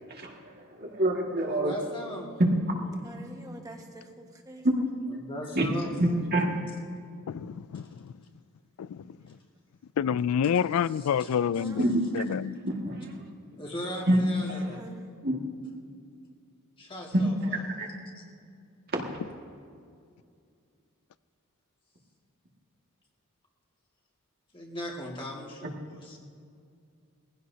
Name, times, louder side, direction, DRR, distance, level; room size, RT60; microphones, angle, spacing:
voice 1, 0.1-1.7 5.5-5.6 6.0-6.5 11.8-12.0 12.6-13.2 14.1-14.2 14.5-14.7 15.2-15.4 17.1-17.2 17.5-17.9 18.9-19.0, right 1 dB, 45° right, 0 dB, 1.9 m, -27 dB
voice 2, 1.5-2.3 2.9-3.1 5.2-6.2 11.0-11.3 13.6-14.9 16.8-17.6 18.2-18.3 24.5-26.2, equal, 25° left, -1 dB, 2.0 m, -38 dB
voice 3, 3.0-4.6 9.0-9.1 11.5-11.9 12.5-12.6 14.7-15.1, right 1 dB, 15° right, 1 dB, 1.5 m, -46 dB
voice 4, 7.3-8.1 8.8-9.2 10.0-12.6, left 8 dB, 70° left, 19 dB, 0.3 m, -28 dB
21.5 x 16.0 x 2.8 m, 2.3 s
head